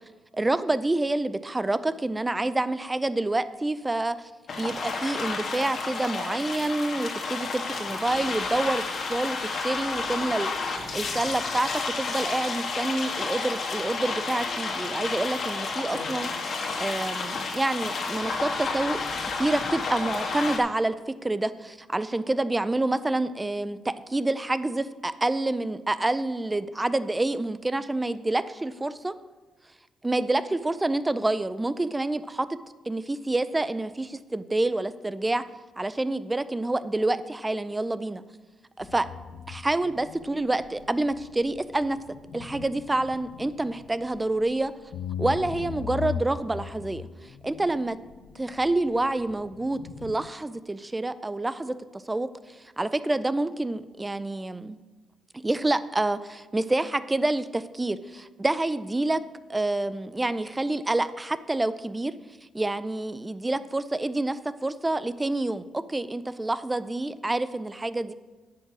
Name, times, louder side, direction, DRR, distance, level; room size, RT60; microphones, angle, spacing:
voice 1, 0.3-4.2 4.6-11.7 12.0-19.0 19.4-29.1 30.0-32.5 32.9-35.4 35.8-38.2 38.8-39.1 39.5-42.0 42.3-44.7 45.2-48.0 48.4-54.8 55.3-59.2 59.5-62.1 62.5-68.1, right 2 dB, 15° right, 14 dB, 0.4 m, -28 dB
sound 1, 4.5-20.6, left 4 dB, 50° left, 1.5 m, -31 dB
sound 2, 38.8-50.3, left 7 dB, 85° left, 0.5 m, -40 dB
9.5 x 6.6 x 6.0 m, 1.3 s
cardioid pair, 125°, 0 cm